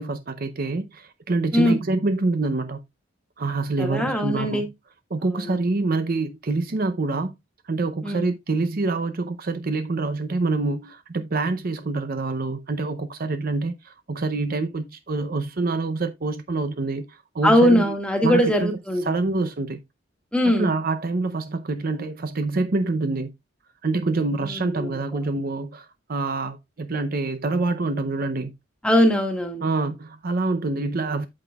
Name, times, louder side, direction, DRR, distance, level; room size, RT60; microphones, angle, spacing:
voice 1, 0.0-2.8 3.4-4.7 5.1-7.3 7.7-17.9 18.2-18.7 19.1-19.8 20.6-23.3 23.8-28.5 29.6-31.3, right 3 dB, 45° right, 0.6 m, -26 dB
voice 2, 3.8-4.6 5.3-5.6 8.0-8.3 17.4-19.2 20.3-20.8 24.4-25.0 28.8-29.6, equal, 5° left, 1.7 m, -21 dB
8.6 x 7.8 x 2.3 m
head